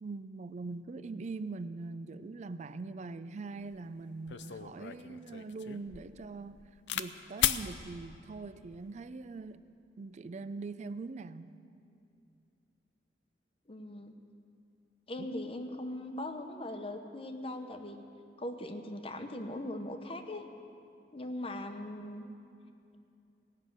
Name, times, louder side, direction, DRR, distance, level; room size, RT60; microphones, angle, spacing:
voice 1, 0.0-6.6 6.9-9.7 10.0-11.6 15.2-15.3, right 3 dB, 40° right, 0.4 m, -42 dB
sound 1, 3.7-3.8 4.3-7.1 7.4-7.7 8.5-8.9, left 11 dB, 80° left, 0.5 m, -35 dB
voice 2, 13.7-14.1 15.1-18.0 18.4-20.4 21.1-22.3, left 1 dB, 35° left, 0.9 m, -40 dB
16.5 x 6.5 x 9.3 m
head